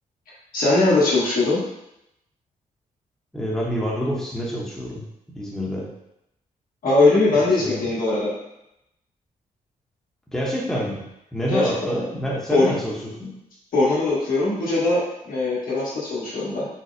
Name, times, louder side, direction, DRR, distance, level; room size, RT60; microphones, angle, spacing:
voice 1, 0.5-1.6 6.8-8.3 11.5-11.6 12.5-12.7 13.7-16.7, left 2 dB, 75° left, -8 dB, 1.3 m, -20 dB
voice 2, 3.3-5.0 5.3-5.9 7.3-7.8 10.3-13.4, equal, 5° left, -4 dB, 0.7 m, -27 dB
4.1 x 2.0 x 2.5 m, 0.85 s
cardioid pair, 75°, 15 cm